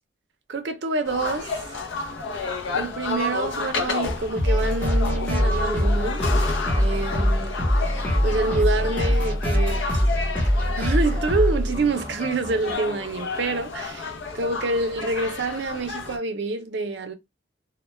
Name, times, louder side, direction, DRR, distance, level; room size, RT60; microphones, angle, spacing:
voice 1, 0.5-1.7 2.7-6.2 6.8-7.6 8.2-9.9 10.8-17.1, right 3 dB, 65° right, 0.5 m, -27 dB
sound 1, 1.0-16.2, left 4 dB, 75° left, 0.5 m, -31 dB
sound 2, 4.4-12.7, equal, 10° left, 1.0 m, -23 dB
2.2 x 2.1 x 3.1 m
head